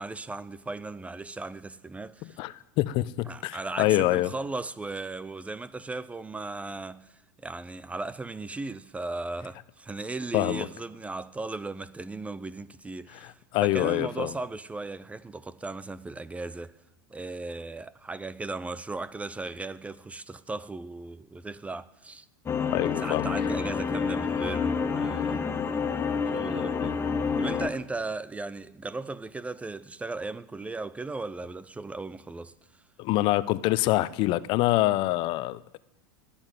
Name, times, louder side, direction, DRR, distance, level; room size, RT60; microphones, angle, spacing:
voice 1, 0.0-2.4 3.3-7.1 7.4-16.7 17.1-22.3 23.0-25.4 26.3-27.0 27.4-32.5, right 3 dB, 10° right, 0.6 m, -37 dB
voice 2, 2.4-4.3 10.3-10.7 13.1-14.3 22.7-23.3 33.0-35.8, left 17 dB, 50° left, 0.7 m, -26 dB
sound 1, 22.5-27.7, left 5 dB, 20° left, 1.3 m, -28 dB
20.0 x 7.2 x 9.2 m
hypercardioid pair, 95°, 11 cm